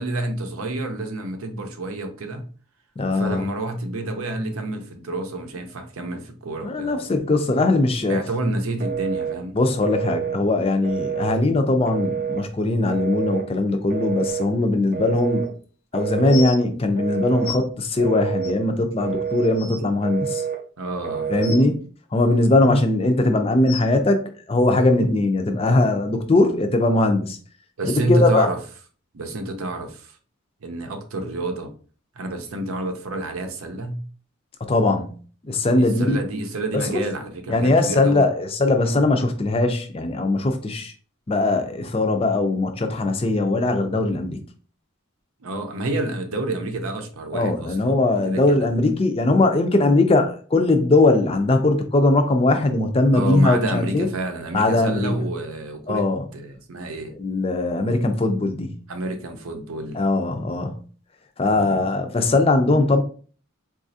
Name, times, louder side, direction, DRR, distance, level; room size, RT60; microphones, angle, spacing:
voice 1, 0.0-2.5 3.1-7.0 8.1-9.6 20.8-21.5 27.8-28.6 29.1-30.2 30.6-31.7 32.2-34.1 35.8-38.3 45.4-48.0 48.3-48.7 53.1-56.1 56.3-57.1 58.9-60.0 61.4-61.9, right 2 dB, 85° right, 0.6 m, -29 dB
voice 2, 3.0-3.4 6.6-8.2 9.5-15.5 15.9-20.4 21.3-21.8 22.1-24.2 24.5-27.4 27.8-28.5 34.7-35.1 35.4-36.2 36.7-37.0 37.5-40.9 41.3-44.4 47.3-54.1 54.5-55.3 55.9-56.2 57.2-58.7 59.9-60.8 61.4-63.0, left 2 dB, 25° left, 0.4 m, -20 dB
Telephone, 8.8-9.4 9.8-10.4 10.8-11.4 11.9-12.4 12.9-13.5 13.9-14.5 14.9-15.5 15.9-16.5 17.0-17.5 18.0-18.6 19.0-19.6 20.0-20.6 21.0-21.6, right 8 dB, 40° right, 0.5 m, -28 dB
sound 1, 15.2-15.3 16.3-16.6 17.4-17.6 18.4-18.5 19.1-19.2 19.4-19.8 21.4-21.6 22.6-22.9 23.7-23.8 25.0-25.1 25.8-25.9 26.6-26.7, left 3 dB, 85° left, 0.5 m, -29 dB
4.0 x 2.4 x 2.6 m
head